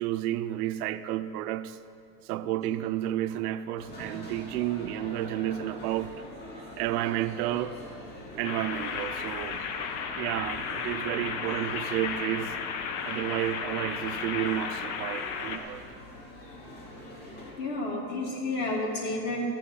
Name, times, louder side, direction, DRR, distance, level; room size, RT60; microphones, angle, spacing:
voice 1, 0.0-1.8 2.2-6.2 6.8-7.8 8.3-9.7 10.2-12.6 13.0-15.8, right 13 dB, 75° right, 0.7 m, -31 dB
sound 1, 3.8-17.5, left 1 dB, 20° left, 3.1 m, -44 dB
sound 2, 8.4-15.6, left 6 dB, 60° left, 1.2 m, -34 dB
voice 2, 17.6-19.4, left 2 dB, 35° left, 2.6 m, -31 dB
15.0 x 6.2 x 9.7 m
supercardioid pair, 180°, 47 cm